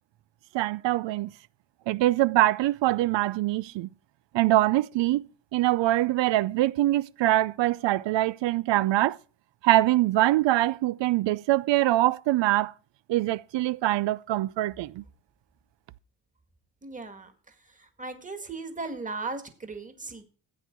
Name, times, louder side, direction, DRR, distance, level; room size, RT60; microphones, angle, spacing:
voice 1, 0.5-1.3 1.9-3.9 4.3-5.2 5.5-9.2 9.6-12.7 13.1-15.0, right 16 dB, 90° right, 0.6 m, -23 dB
voice 2, 16.8-17.3 17.8-20.2, right 3 dB, 20° right, 1.8 m, -37 dB
14.5 x 8.6 x 4.6 m
cardioid pair, 140°, 42 cm